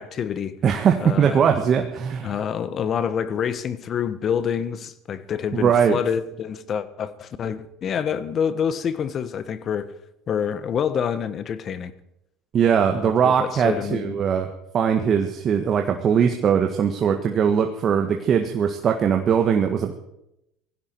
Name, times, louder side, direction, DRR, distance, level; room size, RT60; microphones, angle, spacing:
voice 1, 0.0-0.6 1.0-1.4 2.2-9.9 10.3-11.9 13.0-14.2, left 8 dB, 45° left, 1.4 m, -27 dB
voice 2, 0.6-2.4 5.5-6.0 12.5-14.5 14.7-19.9, right 7 dB, 45° right, 1.6 m, -20 dB
19.0 x 15.5 x 4.7 m
hypercardioid pair, 85°, 0 cm